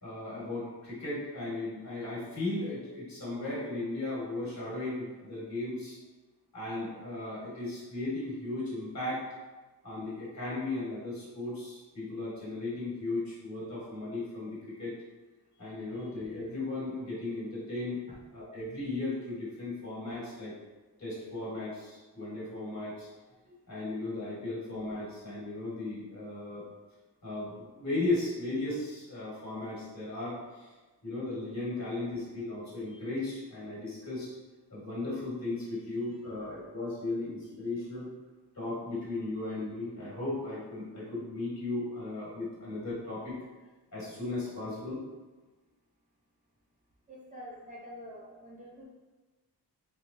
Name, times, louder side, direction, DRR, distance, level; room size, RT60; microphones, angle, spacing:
voice 1, 0.0-6.0 6.5-9.2 9.8-15.0 15.6-18.0 18.3-20.5 21.0-23.1 23.7-26.7 27.2-30.7 31.0-34.3 34.7-38.1 38.5-43.3 43.9-45.0, left 2 dB, 40° left, -8 dB, 1.4 m, -36 dB
voice 2, 47.1-48.8, equal, 20° right, -6 dB, 0.5 m, -47 dB
3.1 x 3.1 x 2.6 m, 1.2 s
wide cardioid pair, 140°, 42 cm